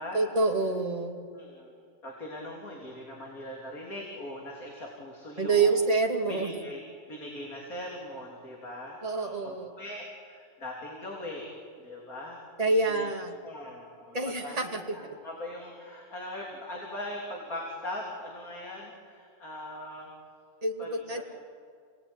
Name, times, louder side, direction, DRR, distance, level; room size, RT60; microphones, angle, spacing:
voice 1, 0.1-1.3 5.4-6.5 9.0-9.7 12.6-13.4 14.1-14.9 20.6-21.2, right 3 dB, 25° right, 2 dB, 2.4 m, -27 dB
voice 2, 1.3-5.8 6.3-6.8 7.1-11.5 11.8-13.1 13.4-20.1 20.8-21.2, left 1 dB, 85° left, -1 dB, 3.8 m, -41 dB
29.5 x 18.5 x 9.8 m, 2.2 s
omnidirectional pair, 1.5 m